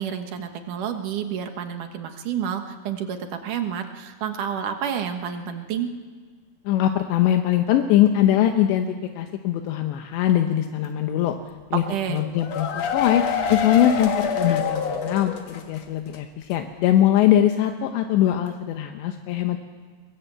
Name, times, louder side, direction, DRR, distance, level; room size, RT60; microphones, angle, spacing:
voice 1, 0.0-5.9 11.9-12.2, right 8 dB, 60° right, 6 dB, 2.3 m, -29 dB
voice 2, 6.7-11.4 11.7-11.8 12.1-13.2 13.5-19.6, left 11 dB, 80° left, 5 dB, 3.2 m, -21 dB
sound 1, 12.2-15.8 16.1-16.2 16.5-16.6, left 6 dB, 55° left, 1.9 m, -26 dB
22.5 x 22.0 x 8.0 m, 1.5 s
omnidirectional pair, 5.1 m